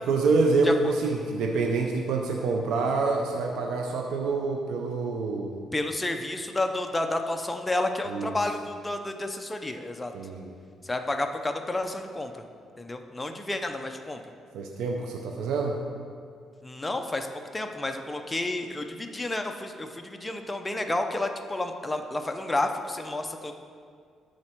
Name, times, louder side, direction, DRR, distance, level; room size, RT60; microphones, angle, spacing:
voice 1, 0.0-5.6 8.1-8.3 10.1-10.5 14.5-15.8, right 3 dB, 85° right, 1 dB, 0.7 m, -26 dB
voice 2, 5.7-10.1 10.8-12.4 12.8-14.2 16.6-17.3 17.5-23.5, left 2 dB, 15° left, 5 dB, 0.6 m, -30 dB
12.5 x 4.3 x 4.5 m, 2.2 s
cardioid pair, 90°, 0 cm